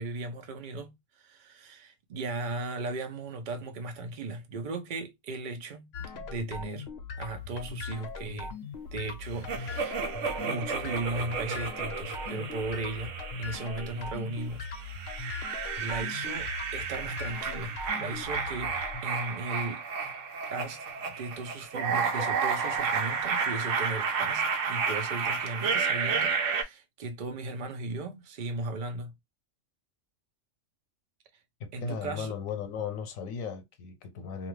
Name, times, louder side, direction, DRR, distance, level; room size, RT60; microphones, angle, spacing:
voice 1, 0.0-6.9 7.2-8.6 8.9-10.0 10.4-14.7 15.2-15.5 15.8-18.8 19.0-19.9 20.5-29.1 31.7-32.3, right 2 dB, 50° right, 0.6 m, -37 dB
sound 1, 5.9-19.0, left 4 dB, 60° left, 0.8 m, -40 dB
sound 2, 9.5-14.2 14.7-26.6, right 5 dB, 70° right, 1.0 m, -32 dB
voice 2, 31.6-34.5, left 6 dB, 85° left, 1.1 m, -36 dB
2.6 x 2.3 x 3.1 m
omnidirectional pair, 1.4 m